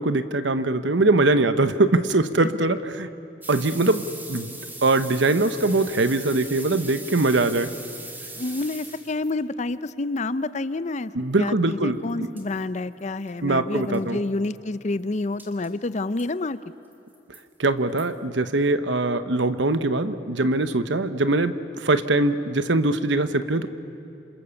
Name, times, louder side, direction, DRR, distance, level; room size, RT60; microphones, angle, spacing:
voice 1, 0.0-3.1 3.5-4.5 4.8-7.7 11.1-12.3 13.4-14.2 17.6-23.7, right 2 dB, 75° right, 11 dB, 1.0 m, -22 dB
sound 1, 3.4-9.3 12.1-12.2 12.4-12.5 13.0-13.1 13.3-13.4 13.8-14.0 15.4-15.7 16.2-16.3 16.9-17.4 18.0-18.1, right 2 dB, 10° right, 2.3 m, -40 dB
voice 2, 8.4-11.1 11.4-16.6, left 2 dB, 40° left, 14 dB, 0.6 m, -28 dB
27.5 x 27.0 x 7.1 m, 2.7 s
head